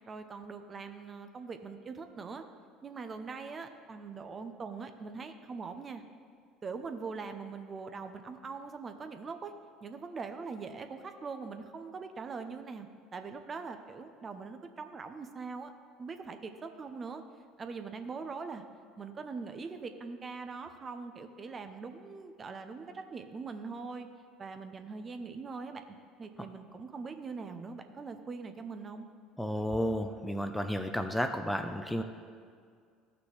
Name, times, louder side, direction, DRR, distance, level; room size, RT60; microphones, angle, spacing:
voice 1, 0.1-2.4 2.8-6.0 6.6-9.5 9.8-15.7 16.0-17.2 17.6-18.6 19.0-24.1 24.4-25.8 26.2-29.1, right 4 dB, 35° right, 7 dB, 0.7 m, -42 dB
voice 2, 29.4-32.0, equal, 5° left, 7 dB, 0.6 m, -32 dB
14.5 x 6.0 x 3.3 m, 2.1 s
hypercardioid pair, 70°, 0 cm